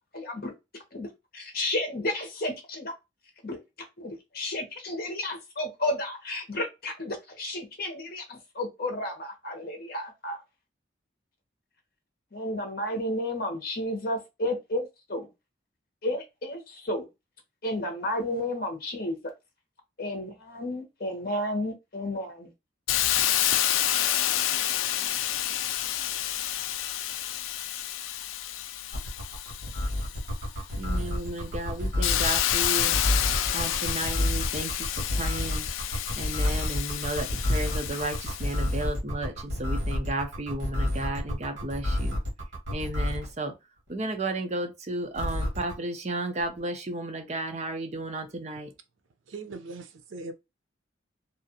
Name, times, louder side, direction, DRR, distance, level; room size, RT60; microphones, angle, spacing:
voice 1, 0.1-0.5 0.9-1.1 1.3-2.9 3.4-3.6 4.0-10.4 12.3-15.3 16.0-17.1 17.6-19.3 20.0-22.5, left 1 dB, 50° left, 0.9 m, -32 dB
Hiss, 22.9-30.5 31.0-38.7, left 12 dB, 90° left, 0.3 m, -29 dB
sound 1, 28.9-43.3 45.1-45.7, left 1 dB, 75° right, 1.4 m, -29 dB
voice 2, 30.8-33.0 33.5-35.7 36.1-42.2 42.7-43.5 43.9-48.7, right 1 dB, 35° right, 0.5 m, -33 dB
voice 3, 49.3-50.3, right 3 dB, 90° right, 0.6 m, -40 dB
2.8 x 2.4 x 2.7 m
head